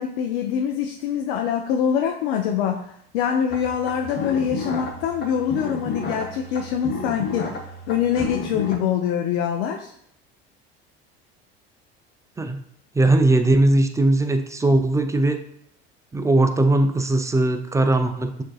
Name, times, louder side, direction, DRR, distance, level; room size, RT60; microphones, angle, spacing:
voice 1, 0.0-7.5 7.9-9.9, left 8 dB, 80° left, 3 dB, 0.5 m, -24 dB
sound 1, 3.5-8.8, left 3 dB, 35° left, 0.8 m, -32 dB
voice 2, 13.0-15.4 16.1-18.4, right 2 dB, 10° right, 7 dB, 0.3 m, -19 dB
6.0 x 2.6 x 2.3 m, 0.70 s
hypercardioid pair, 80°, 29 cm